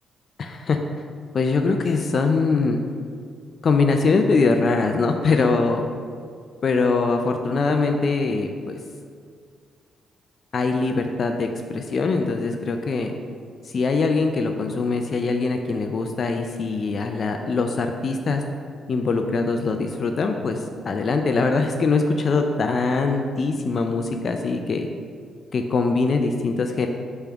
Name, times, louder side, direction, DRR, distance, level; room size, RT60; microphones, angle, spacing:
voice 1, 0.4-0.8 1.3-2.8 3.6-5.8 6.6-8.8 10.5-13.1 13.7-18.4 18.9-24.9 25.5-26.9, left 4 dB, 45° left, 5 dB, 0.4 m, -22 dB
5.2 x 3.5 x 5.7 m, 2.1 s
cardioid pair, 120°, 0 cm